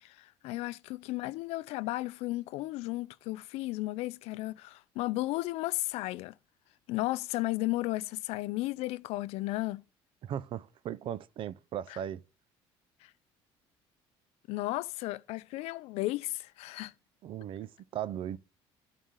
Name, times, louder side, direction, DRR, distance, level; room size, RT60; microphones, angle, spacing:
voice 1, 0.0-6.3 6.9-9.8 11.9-12.0 13.0-13.1 14.5-16.9, left 19 dB, 75° left, 0.5 m, -34 dB
voice 2, 10.2-12.2 17.2-18.4, right 10 dB, 55° right, 0.6 m, -37 dB
11.0 x 4.2 x 6.4 m
cardioid pair, 110°, 11 cm